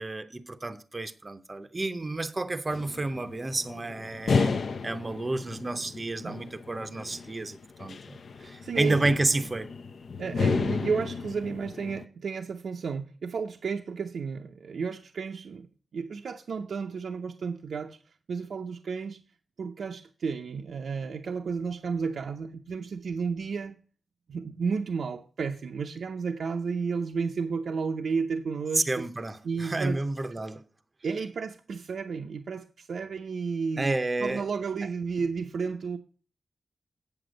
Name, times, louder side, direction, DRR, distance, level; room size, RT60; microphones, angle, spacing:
voice 1, 0.0-4.6 4.8-9.7 28.7-30.6 33.8-34.4, right 2 dB, 25° right, 0.6 m, -30 dB
sound 1, 2.7-12.0, left 4 dB, 60° left, 0.5 m, -32 dB
voice 2, 8.4-9.0 10.2-15.7 15.9-18.0 18.3-19.2 19.6-23.8 24.3-29.0 29.4-30.0 31.0-36.0, right 5 dB, 75° right, 0.6 m, -32 dB
8.4 x 7.9 x 5.0 m
wide cardioid pair, 170°, 0 cm